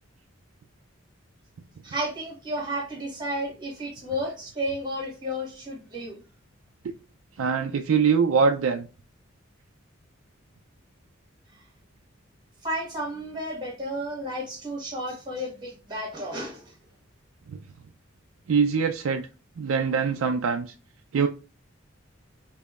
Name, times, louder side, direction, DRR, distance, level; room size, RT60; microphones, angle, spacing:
voice 1, 1.8-6.2 12.6-16.7, equal, 20° right, 1 dB, 1.4 m, -32 dB
voice 2, 7.4-8.9 17.5-17.6 18.5-19.3 19.6-20.7 21.1-21.3, right 5 dB, 85° right, 4 dB, 0.4 m, -23 dB
5.0 x 2.7 x 2.3 m, 0.35 s
head